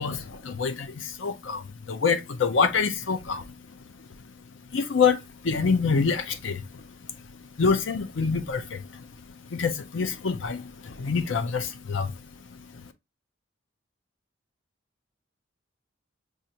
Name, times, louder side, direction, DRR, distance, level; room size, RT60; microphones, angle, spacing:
voice 1, 0.0-4.3 4.7-12.9, left 5 dB, 75° left, 0.6 m, -27 dB
6.4 x 2.5 x 2.8 m
head